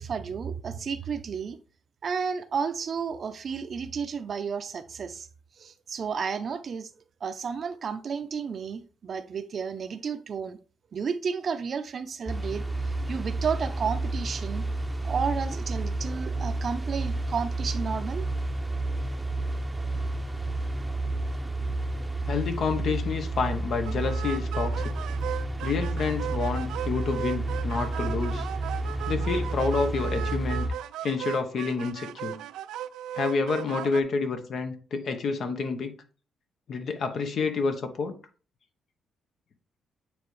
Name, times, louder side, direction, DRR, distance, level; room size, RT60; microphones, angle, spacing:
voice 1, 0.0-1.6 2.0-5.3 5.6-6.9 7.2-10.6 10.9-12.6 13.1-14.6 15.0-18.3, right 6 dB, 50° right, 0.6 m, -32 dB
sound 1, 12.3-30.7, right 2 dB, 10° right, 0.8 m, -30 dB
voice 2, 22.3-24.9 25.6-28.5 29.1-30.7 31.0-32.4 33.2-35.9 36.7-38.1, left 4 dB, 60° left, 1.0 m, -29 dB
sound 2, 23.9-34.0, right 12 dB, 85° right, 0.3 m, -37 dB
8.8 x 3.5 x 3.3 m
cardioid pair, 90°, 0 cm